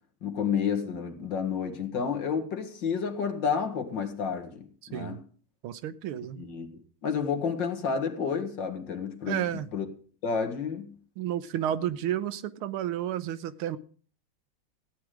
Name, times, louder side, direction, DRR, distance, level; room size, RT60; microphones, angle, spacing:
voice 1, 0.2-5.2 6.4-6.7 7.0-9.4 9.7-9.9 10.2-11.0, left 6 dB, 60° left, 2.4 m, -30 dB
voice 2, 5.6-6.4 9.3-9.7 11.2-13.8, right 11 dB, 85° right, 1.7 m, -31 dB
15.5 x 9.6 x 4.9 m
omnidirectional pair, 2.3 m